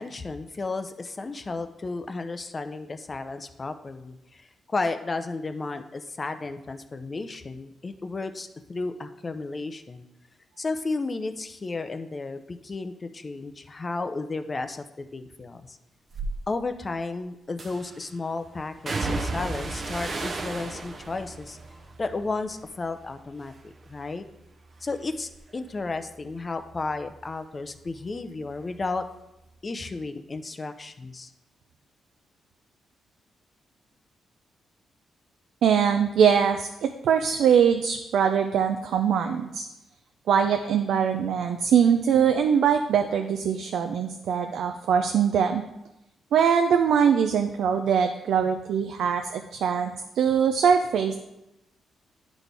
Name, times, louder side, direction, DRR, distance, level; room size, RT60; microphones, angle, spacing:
voice 1, 0.0-10.0 10.6-15.8 16.5-21.6 22.0-24.2 24.8-29.0 29.6-31.3, left 3 dB, 30° left, 9 dB, 0.5 m, -33 dB
sound 1, 16.1-16.3 17.6-18.0 18.9-23.1 23.4-24.0 24.4-27.7 28.0-29.1 29.4-29.5, right 3 dB, 40° right, 0.7 m, -35 dB
voice 2, 35.6-39.7 40.3-45.6 46.3-51.1, right 7 dB, 80° right, 6 dB, 0.4 m, -22 dB
11.0 x 4.1 x 3.4 m, 0.90 s
cardioid pair, 110°, 0 cm